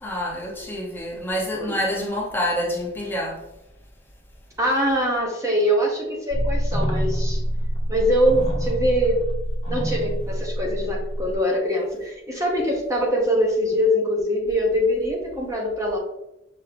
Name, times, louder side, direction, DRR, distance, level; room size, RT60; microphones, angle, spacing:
voice 1, 0.0-3.4, equal, 10° left, -3 dB, 0.8 m, -27 dB
voice 2, 4.6-7.4 7.9-9.2 9.7-16.0, equal, 15° right, -2 dB, 0.8 m, -23 dB
sound 1, 6.3-11.4, equal, 35° left, 1.2 m, -26 dB
5.9 x 2.7 x 3.3 m, 0.89 s
head